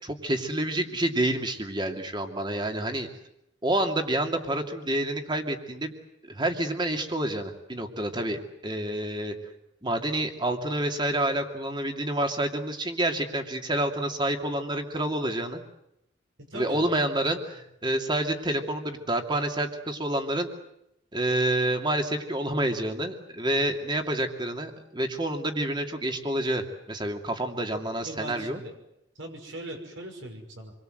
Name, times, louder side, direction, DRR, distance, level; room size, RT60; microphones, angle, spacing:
voice 1, 0.0-3.1 3.6-5.9 6.2-9.3 9.8-15.6 16.5-20.5 21.1-28.6, right 1 dB, 25° right, 5 dB, 2.6 m, -28 dB
voice 2, 16.5-16.8 28.0-28.7 29.2-30.7, right 1 dB, 75° right, 3 dB, 5.8 m, -39 dB
27.5 x 23.0 x 7.9 m, 0.80 s
head